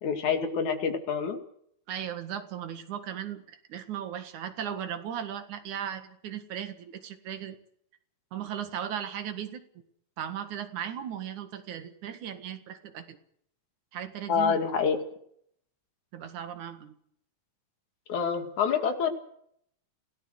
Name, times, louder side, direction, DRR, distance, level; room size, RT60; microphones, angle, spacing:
voice 1, 0.0-1.4 14.3-15.0 18.1-19.1, left 6 dB, 80° left, 7 dB, 3.7 m, -27 dB
voice 2, 1.9-7.6 8.3-9.6 10.2-13.2 13.9-14.6 16.1-16.9, right 9 dB, 90° right, 9 dB, 3.2 m, -37 dB
26.0 x 17.5 x 6.6 m, 0.69 s
omnidirectional pair, 3.3 m